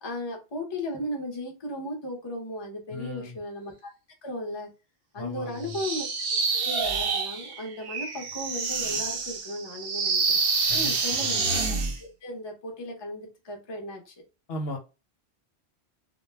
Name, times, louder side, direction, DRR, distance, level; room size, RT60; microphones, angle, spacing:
voice 1, 0.0-3.9 4.2-4.7 5.1-6.1 6.5-10.4 10.7-11.6 11.9-14.1, left 1 dB, 30° left, 1 dB, 0.5 m, -36 dB
voice 2, 2.9-3.4 5.2-5.8 10.7-11.4 14.5-14.8, left 2 dB, 60° left, 2 dB, 0.9 m, -36 dB
sound 1, 5.7-12.0, right 4 dB, 60° right, 0.7 m, -27 dB
2.2 x 2.0 x 3.2 m, 0.29 s
omnidirectional pair, 1.2 m